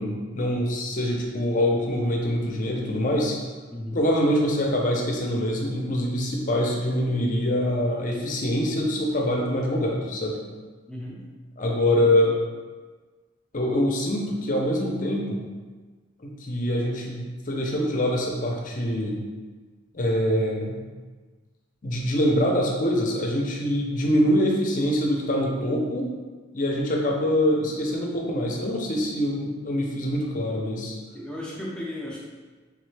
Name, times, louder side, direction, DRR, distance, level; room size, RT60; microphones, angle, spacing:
voice 1, 0.0-3.4 3.9-10.4 11.6-12.4 13.5-15.4 16.4-19.2 19.9-20.8 21.8-26.1 26.5-30.9, equal, 40° left, 0 dB, 0.6 m, -24 dB
voice 2, 3.7-4.0 10.9-11.2 31.1-32.2, left 1 dB, 5° left, -5 dB, 0.6 m, -35 dB
3.7 x 3.2 x 3.2 m, 1.4 s
head